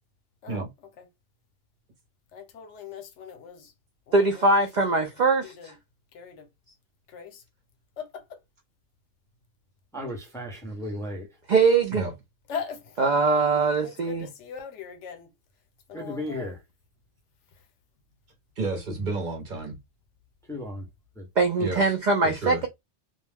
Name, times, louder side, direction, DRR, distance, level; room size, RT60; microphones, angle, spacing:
voice 1, 2.3-3.6 4.1-4.5 5.2-5.7 6.1-6.4 7.1-7.4 8.0-8.1 12.5-12.8 13.8-15.3 15.9-16.5, left 7 dB, 75° left, 1.0 m, -39 dB
voice 2, 4.1-5.7 11.5-12.0 13.0-14.3 21.4-22.7, right 3 dB, 65° right, 0.4 m, -22 dB
voice 3, 9.9-11.3 15.9-16.6 20.5-20.9 21.2-21.3, left 1 dB, 5° left, 0.4 m, -35 dB
voice 4, 18.6-19.8 21.6-21.9 22.2-22.6, right 3 dB, 45° right, 0.8 m, -31 dB
2.3 x 2.1 x 3.3 m
omnidirectional pair, 1.2 m